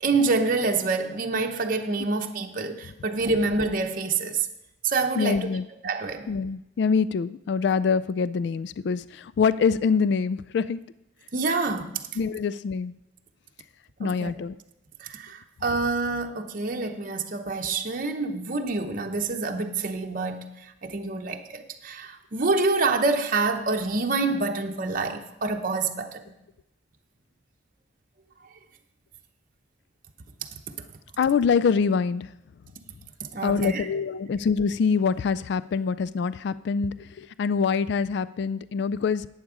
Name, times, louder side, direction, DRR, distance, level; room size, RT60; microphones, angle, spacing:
voice 1, 0.0-4.5 4.8-5.5 5.8-6.3 11.3-11.9 14.0-14.3 15.0-20.5 20.8-26.2 33.3-33.9, right 3 dB, 45° right, 0.8 m, -27 dB
voice 2, 5.2-5.7 6.3-10.8 12.2-12.9 14.0-14.6 31.2-32.3 33.4-39.3, left 5 dB, 60° left, 0.3 m, -25 dB
11.0 x 8.8 x 5.0 m
head